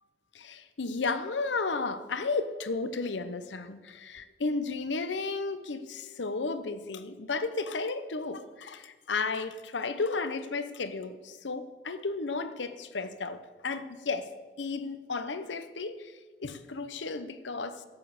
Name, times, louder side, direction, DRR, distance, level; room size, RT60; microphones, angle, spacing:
voice 1, 0.3-14.3 14.6-16.1 16.4-17.9, left 3 dB, 90° left, 0.8 m, -33 dB
12.0 x 8.1 x 7.1 m
head